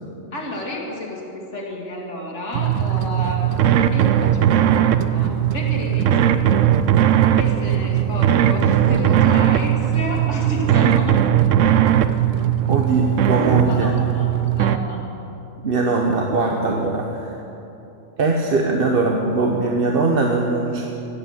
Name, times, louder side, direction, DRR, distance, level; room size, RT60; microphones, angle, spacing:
voice 1, 0.3-6.6 7.4-11.2 13.6-15.0, left 1 dB, 70° left, -2 dB, 2.6 m, -31 dB
sound 1, 2.5-14.8, right 10 dB, 80° right, 1.0 m, -18 dB
voice 2, 12.7-13.9 15.6-17.3 18.2-20.9, right 3 dB, 50° right, 1 dB, 1.1 m, -21 dB
16.0 x 8.3 x 7.3 m, 3.0 s
omnidirectional pair, 1.3 m